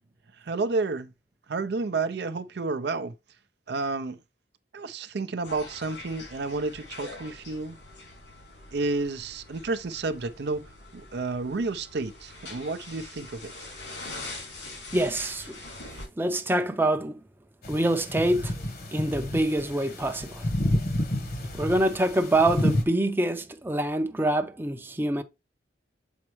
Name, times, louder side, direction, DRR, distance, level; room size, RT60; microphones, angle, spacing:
voice 1, 0.4-1.1 1.5-3.1 3.7-4.2 4.7-7.8 8.7-13.5, right 3 dB, 65° right, 0.5 m, -31 dB
sound 1, 5.4-16.1, left 2 dB, 90° left, 3.8 m, -43 dB
voice 2, 14.9-15.6 16.2-17.2 17.7-18.5 18.9-20.5 21.5-25.2, right 1 dB, 10° right, 0.5 m, -25 dB
sound 2, 17.6-22.8, left 1 dB, 60° left, 1.2 m, -30 dB
7.2 x 4.3 x 3.1 m
head